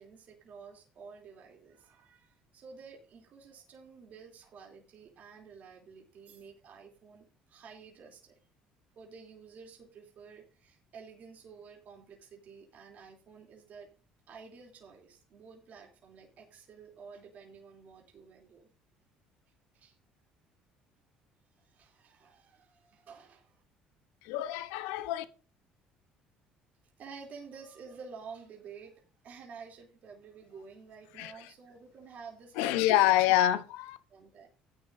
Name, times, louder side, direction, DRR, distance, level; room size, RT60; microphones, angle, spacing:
voice 1, 0.0-8.3 8.9-13.9 14.3-18.7 19.7-20.0 21.6-23.6 27.0-33.1 34.1-34.5, right 5 dB, 55° right, 3.0 m, -51 dB
voice 2, 24.2-25.2 31.2-31.3 32.6-34.0, left 13 dB, 85° left, 0.9 m, -26 dB
15.0 x 9.6 x 2.6 m
supercardioid pair, 80°, 3 cm